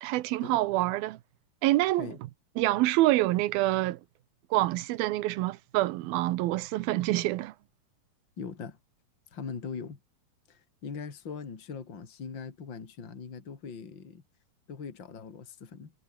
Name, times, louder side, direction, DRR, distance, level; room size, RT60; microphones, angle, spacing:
voice 1, 0.0-1.2 1.6-2.2 2.6-4.0 4.5-7.5, right 17 dB, 80° right, 2.7 m, -26 dB
voice 2, 8.4-8.8 9.3-10.0 10.5-14.2 14.7-15.9, left 5 dB, 30° left, 3.4 m, -41 dB
omnidirectional pair, 4.3 m